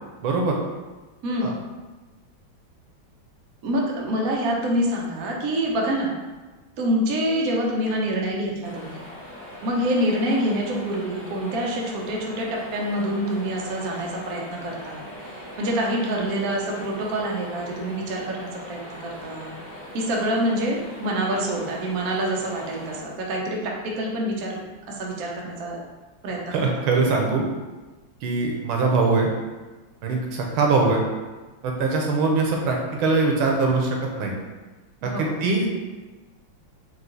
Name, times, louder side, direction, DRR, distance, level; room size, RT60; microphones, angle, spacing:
voice 1, 0.2-0.5 1.4-1.5 26.5-27.4 28.2-29.3 30.0-31.0 31.6-34.3 35.0-35.7, right 3 dB, 90° right, 0 dB, 1.6 m, -22 dB
voice 2, 3.6-6.1 6.8-9.0 9.6-15.1 15.6-19.5 19.9-24.6 24.9-25.8 26.2-26.8 35.0-35.4, right 1 dB, 60° right, -2 dB, 1.0 m, -26 dB
sound 1, 8.6-23.0, left 1 dB, 10° left, 1.1 m, -41 dB
4.7 x 2.4 x 3.8 m, 1.2 s
omnidirectional pair, 2.2 m